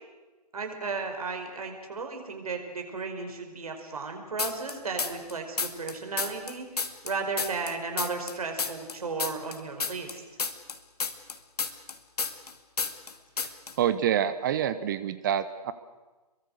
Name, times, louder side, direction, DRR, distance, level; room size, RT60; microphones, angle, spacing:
voice 1, 0.5-10.2, right 4 dB, 60° right, 4 dB, 5.2 m, -34 dB
sound 1, 4.4-5.3 5.6-8.3 8.6-12.5 12.8-13.1 13.4-13.7, left 5 dB, 70° left, 2.3 m, -31 dB
voice 2, 13.8-15.7, right 9 dB, 30° right, 14 dB, 1.0 m, -27 dB
27.0 x 23.0 x 6.6 m, 1.2 s
figure-of-eight pair, 140°, 21 cm